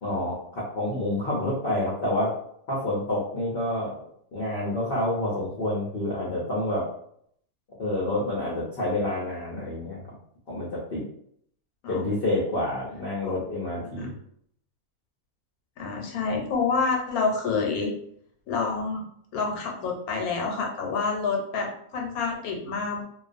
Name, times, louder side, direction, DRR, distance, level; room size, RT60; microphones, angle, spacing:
voice 1, 0.0-2.3 2.7-4.0 4.3-6.8 7.8-10.0 10.5-11.0 11.9-14.1, left 1 dB, 55° left, -5 dB, 0.7 m, -28 dB
voice 2, 15.8-17.9 18.5-19.0 19.3-23.0, left 4 dB, 80° left, 1 dB, 1.1 m, -28 dB
2.3 x 2.3 x 2.5 m, 0.67 s
omnidirectional pair, 1.5 m